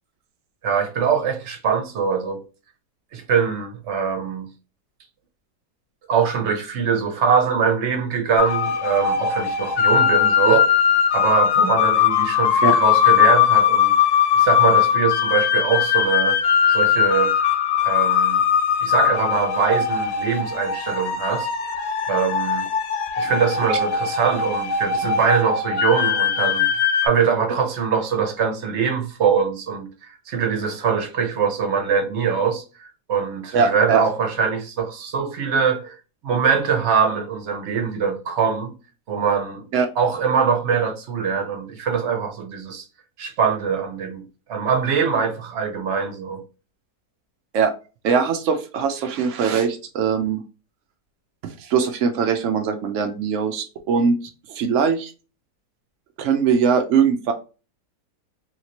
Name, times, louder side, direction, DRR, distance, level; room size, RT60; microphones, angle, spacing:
voice 1, 0.6-2.4 3.1-4.5 6.1-10.6 11.1-13.9 14.3-16.4 16.7-17.3 17.8-18.4 18.8-21.8 22.1-22.7 23.2-36.0 36.2-38.7 39.1-39.6 40.0-42.8 43.2-44.2 44.5-46.4, right 6 dB, 55° right, 0.8 m, -23 dB
sound 1, 8.4-27.1, left 8 dB, 70° left, 1.0 m, -20 dB
voice 2, 33.5-34.0 39.7-39.9 47.5-47.7 48.0-50.4 51.6-55.1 56.2-57.3, right 6 dB, 90° right, 0.6 m, -21 dB
3.0 x 2.8 x 2.8 m
omnidirectional pair, 1.9 m